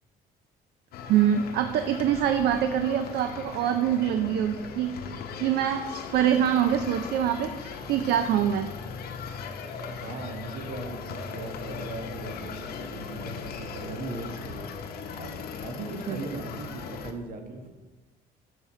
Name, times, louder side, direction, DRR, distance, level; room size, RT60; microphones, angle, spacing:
sound 1, 0.9-17.1, left 5 dB, 65° left, 0.8 m, -38 dB
voice 1, 1.1-4.9 5.4-8.7 16.1-16.2, right 9 dB, 75° right, 8 dB, 0.5 m, -25 dB
voice 2, 9.8-15.3 15.6-17.7, right 3 dB, 55° right, 4 dB, 1.3 m, -39 dB
6.9 x 6.5 x 4.2 m, 1.2 s
cardioid pair, 110°, 17 cm